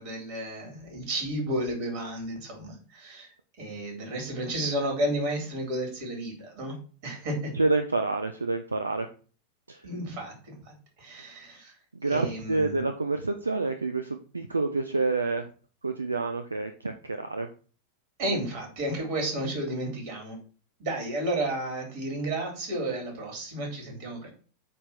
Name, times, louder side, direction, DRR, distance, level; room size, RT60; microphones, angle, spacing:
voice 1, 0.0-3.3 3.6-6.8 7.0-7.5 9.8-11.7 12.0-12.8 18.2-20.4 20.8-24.3, right 1 dB, 50° right, 1 dB, 4.2 m, -32 dB
voice 2, 7.5-9.1 9.7-9.8 11.9-15.5 15.8-17.5, right 3 dB, 80° right, 7 dB, 0.6 m, -28 dB
8.6 x 3.5 x 6.0 m, 0.39 s
figure-of-eight pair, 90°, 0 cm